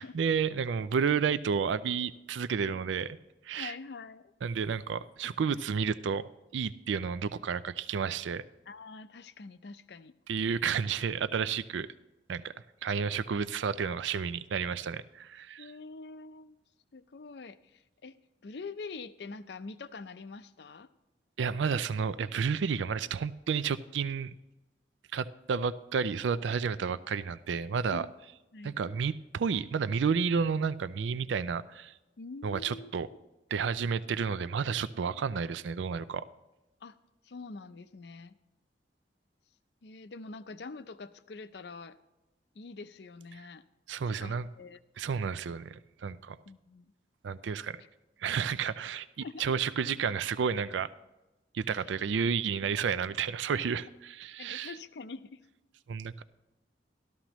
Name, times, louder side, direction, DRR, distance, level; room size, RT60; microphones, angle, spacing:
voice 1, 0.0-3.2 3.4-3.7 4.4-8.4 10.3-11.9 12.3-12.5 12.8-15.7 21.4-24.3 25.1-28.1 28.6-31.9 32.4-33.1 33.5-36.2 43.9-44.5 45.0-46.4 47.2-47.8 48.2-50.9 51.5-54.7 55.9-56.2, right 6 dB, 85° right, 16 dB, 0.4 m, -31 dB
voice 2, 3.5-4.3 5.2-5.3 8.7-10.1 15.6-16.6 16.9-18.2 18.4-20.9 27.9-28.1 28.5-28.8 32.2-32.9 36.8-37.0 37.2-38.4 39.8-42.0 42.6-43.6 44.1-44.8 46.5-46.9 47.8-47.9 49.2-49.5 53.7-53.8 54.4-55.4, left 4 dB, 65° left, 13 dB, 0.5 m, -45 dB
13.5 x 13.0 x 3.0 m, 1.0 s
head